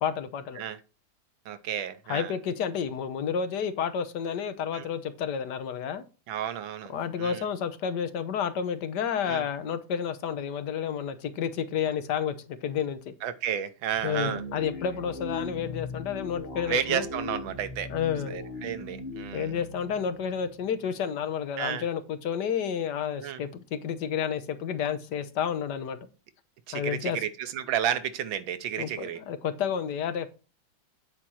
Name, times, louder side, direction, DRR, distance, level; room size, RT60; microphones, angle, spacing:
voice 1, 0.0-0.6 2.1-6.0 6.9-13.1 14.0-17.0 17.9-18.4 19.3-26.0 26.7-27.2 28.8-30.3, left 7 dB, 65° left, 1.4 m, -30 dB
voice 2, 1.4-2.3 4.7-4.9 6.3-7.5 9.3-9.4 13.2-14.4 16.7-17.9 18.3-19.6 21.6-21.8 23.2-23.4 26.7-29.2, right 9 dB, 85° right, 1.6 m, -32 dB
sound 1, 13.9-21.1, left 2 dB, 30° left, 1.9 m, -39 dB
8.9 x 4.2 x 6.3 m
omnidirectional pair, 2.1 m